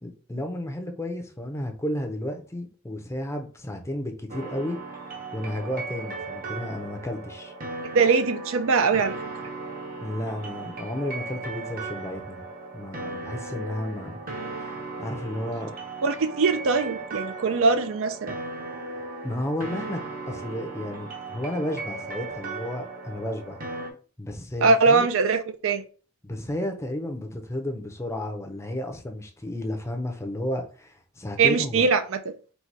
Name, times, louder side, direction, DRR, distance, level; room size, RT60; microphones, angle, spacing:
voice 1, 0.0-4.8 5.3-7.5 10.0-12.4 12.7-14.2 14.6-14.7 15.0-15.7 19.2-20.0 20.3-23.6 24.2-25.1 26.2-31.9, left 1 dB, 15° left, 0.6 m, -32 dB
sound 1, 4.3-23.9, right 3 dB, 40° right, 0.8 m, -37 dB
voice 2, 7.9-9.1 16.0-18.4 24.6-25.8 31.4-32.3, right 4 dB, 60° right, 0.4 m, -22 dB
4.1 x 2.2 x 4.6 m
head